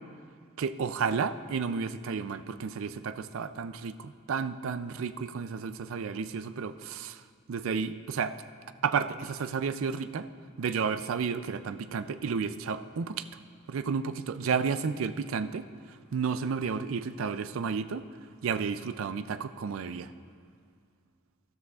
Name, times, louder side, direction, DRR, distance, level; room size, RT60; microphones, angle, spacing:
voice 1, 0.6-7.2 7.5-8.3 8.8-10.3 10.6-13.3 13.7-15.7 16.1-18.0 18.4-20.1, right 5 dB, 75° right, 12 dB, 0.4 m, -32 dB
14.0 x 12.5 x 2.4 m, 2.1 s
head